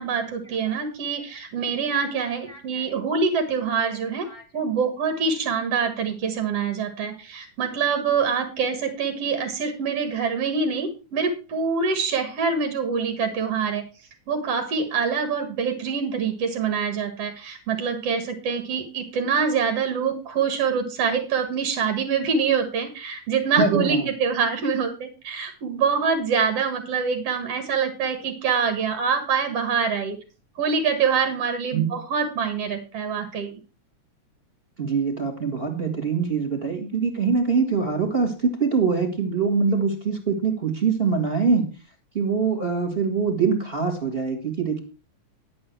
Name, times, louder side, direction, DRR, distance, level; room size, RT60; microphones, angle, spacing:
voice 1, 0.0-4.3 4.5-13.8 14.3-30.2 30.6-33.5, right 5 dB, 60° right, 7 dB, 2.8 m, -25 dB
voice 2, 2.5-2.8 4.2-4.4 23.6-24.1 31.7-31.9 34.8-41.7 42.1-44.8, right 5 dB, 20° right, 5 dB, 2.1 m, -24 dB
11.5 x 8.6 x 4.6 m, 0.32 s
omnidirectional pair, 3.3 m